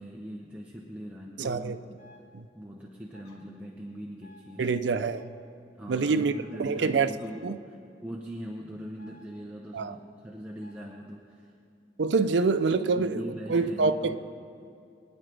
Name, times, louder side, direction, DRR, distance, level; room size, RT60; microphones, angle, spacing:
voice 1, 0.0-2.0 2.5-4.7 5.8-11.5 12.2-12.5 12.9-14.2, equal, 10° right, 0.8 m, -41 dB
voice 2, 1.4-1.8 2.3-2.5 4.6-5.3 5.9-6.3 6.6-7.1 7.4-7.6 9.7-10.0 12.0-13.2 13.5-14.2, right 4 dB, 85° right, 0.5 m, -26 dB
sound 1, 2.0-2.2 3.1-3.3 4.2-4.4 5.0-5.3 6.1-6.4 7.1-7.3 9.0-9.2 10.6-10.9, left 1 dB, 60° left, 2.4 m, -55 dB
22.5 x 10.0 x 3.3 m
head